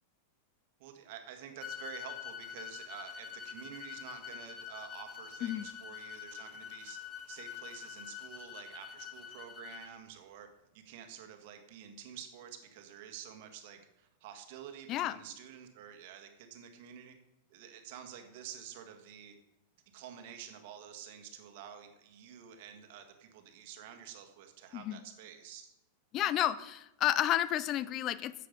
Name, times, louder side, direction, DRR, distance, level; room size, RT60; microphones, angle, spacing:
voice 1, 0.8-7.0 7.3-10.5 10.7-17.1 17.5-19.3 19.9-25.7, right 9 dB, 60° right, 6 dB, 1.8 m, -49 dB
sound 1, 1.6-9.9, left 8 dB, 25° left, 1.5 m, -46 dB
voice 2, 26.1-28.3, left 12 dB, 40° left, 16 dB, 0.5 m, -31 dB
10.5 x 7.7 x 5.2 m, 0.89 s
hypercardioid pair, 115°, 0 cm